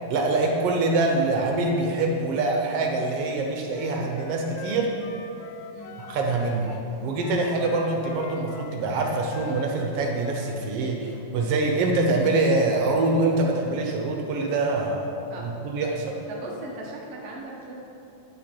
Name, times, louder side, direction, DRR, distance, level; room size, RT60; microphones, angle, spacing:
voice 1, 0.1-4.9 6.0-15.1 15.4-16.2, right 2 dB, 65° right, 1 dB, 1.7 m, -25 dB
Wind instrument woodwind instrument, 3.7-6.9 7.2-10.6, left 5 dB, 80° left, 1.7 m, -42 dB
voice 2, 15.3-15.6 16.3-17.8, right 2 dB, 45° right, -3 dB, 0.8 m, -38 dB
9.4 x 7.1 x 4.5 m, 2.8 s
omnidirectional pair, 3.3 m